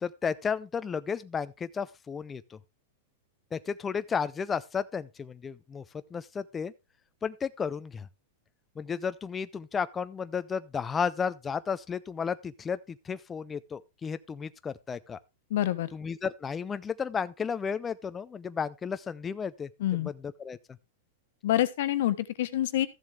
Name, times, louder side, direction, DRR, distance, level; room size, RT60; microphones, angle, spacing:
voice 1, 0.0-2.6 3.5-5.8 6.1-6.7 7.2-8.1 8.8-15.2 15.9-20.6, left 6 dB, 15° left, 0.5 m, -33 dB
voice 2, 15.5-15.9 19.8-20.1 21.4-22.9, left 13 dB, 65° left, 1.2 m, -27 dB
14.0 x 7.4 x 3.3 m
hypercardioid pair, 135°, 0 cm